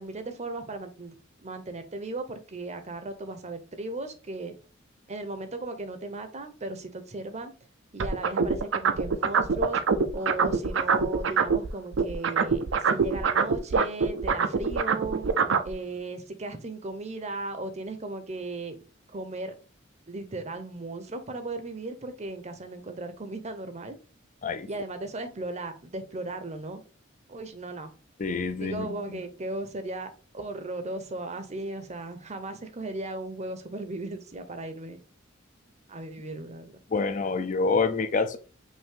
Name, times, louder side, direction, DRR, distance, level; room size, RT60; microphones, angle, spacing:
voice 1, 0.0-4.5 5.1-7.5 7.9-9.8 10.1-15.2 15.6-18.8 19.1-19.5 20.1-24.0 24.7-26.8 27.3-27.9 28.6-35.0 35.9-36.7, right 2 dB, 35° right, 0.7 m, -36 dB
sound 1, 8.0-11.7 11.9-15.7, right 5 dB, 70° right, 0.5 m, -24 dB
voice 2, 28.2-28.9 36.9-38.4, left 4 dB, 40° left, 0.5 m, -27 dB
5.4 x 2.7 x 3.7 m
head